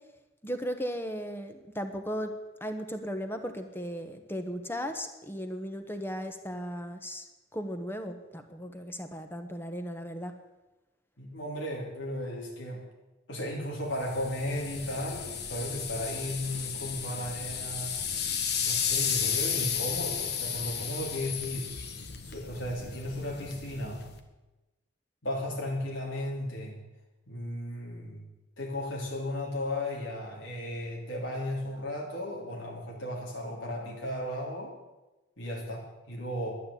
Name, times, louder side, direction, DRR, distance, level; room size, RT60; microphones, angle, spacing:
voice 1, 0.4-2.3 2.6-7.3 7.5-10.3, equal, 10° left, 7 dB, 1.2 m, -36 dB
voice 2, 11.2-12.8 13.3-18.0 18.6-21.7 22.2-24.1 25.2-26.8 27.3-28.2 28.6-34.7 35.4-36.6, left 1 dB, 85° left, -2 dB, 2.9 m, -35 dB
sound 1, 13.9-24.2, left 7 dB, 55° left, 1.5 m, -33 dB
12.0 x 9.9 x 8.5 m, 1.1 s
head